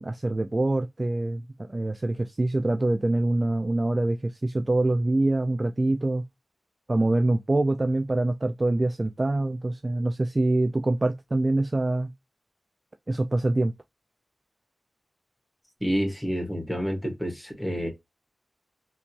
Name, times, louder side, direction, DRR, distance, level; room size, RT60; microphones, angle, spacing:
voice 1, 0.0-1.4 1.7-6.2 6.9-12.1 13.1-13.7, right 2 dB, 35° right, 0.3 m, -25 dB
voice 2, 15.8-17.9, equal, 5° left, 1.7 m, -28 dB
3.4 x 2.8 x 3.0 m
wide cardioid pair, 70°, 0 cm